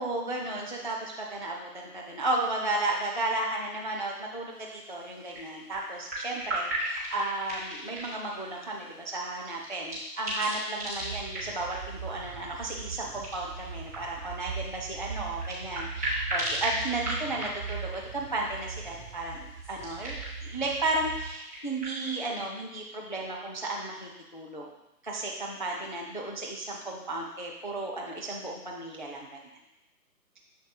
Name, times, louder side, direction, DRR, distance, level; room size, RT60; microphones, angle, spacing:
voice 1, 0.0-24.7 25.0-29.4, right 2 dB, 35° left, -1 dB, 0.4 m, -34 dB
sound 1, 4.5-22.1, right 1 dB, 10° right, 0.6 m, -38 dB
sound 2, 10.9-21.4, right 5 dB, 70° right, 0.9 m, -41 dB
6.7 x 6.3 x 2.3 m, 0.91 s
hypercardioid pair, 155°, 49 cm